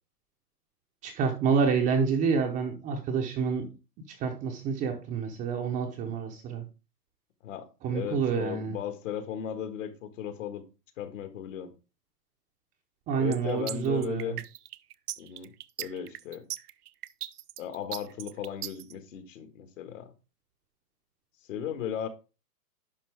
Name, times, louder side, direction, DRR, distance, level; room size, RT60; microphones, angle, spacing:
voice 1, 1.0-3.7 4.1-6.6 7.8-8.8 13.1-14.4, right 6 dB, 15° right, 2 dB, 0.7 m, -28 dB
voice 2, 7.4-10.6 11.0-11.7 13.2-14.4 15.2-15.5 15.8-16.5 17.6-20.1 21.5-22.1, left 9 dB, 50° left, 8 dB, 1.6 m, -36 dB
sound 1, 13.3-18.9, right 13 dB, 65° right, 0.6 m, -38 dB
10.5 x 5.6 x 3.4 m, 0.31 s
hypercardioid pair, 135°, 49 cm